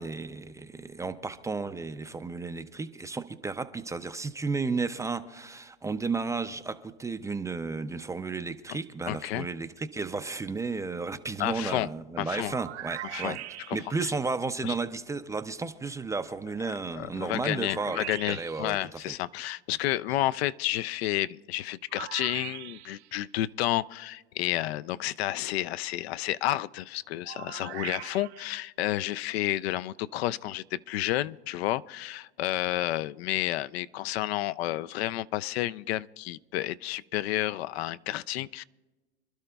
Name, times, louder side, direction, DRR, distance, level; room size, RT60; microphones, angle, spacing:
voice 1, 0.0-13.4 13.7-19.1, right 4 dB, 10° right, 10 dB, 0.4 m, -33 dB
voice 2, 9.1-9.5 11.4-11.9 12.2-12.5 13.1-13.4 14.6-14.7 16.9-38.6, left 15 dB, 70° left, 16 dB, 0.5 m, -31 dB
sound 1, 12.4-14.1 17.6-18.8 21.9-23.1 27.2-28.6, right 14 dB, 80° right, 0.7 m, -41 dB
27.5 x 12.0 x 2.3 m, 1.2 s
hypercardioid pair, 110°, 33 cm